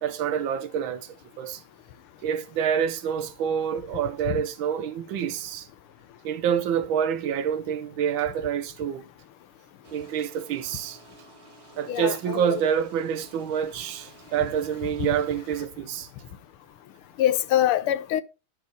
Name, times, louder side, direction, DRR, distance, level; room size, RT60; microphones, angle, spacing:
voice 1, 0.0-1.1 1.4-1.6 2.2-5.7 6.2-9.0 9.9-11.0 11.8-16.1, right 8 dB, 70° right, 1.4 m, -27 dB
sound 1, 9.8-15.7, right 2 dB, 40° right, 2.7 m, -52 dB
voice 2, 11.9-12.6 15.0-15.1 17.2-18.2, left 12 dB, 80° left, 1.5 m, -24 dB
9.9 x 6.1 x 3.9 m
omnidirectional pair, 2.4 m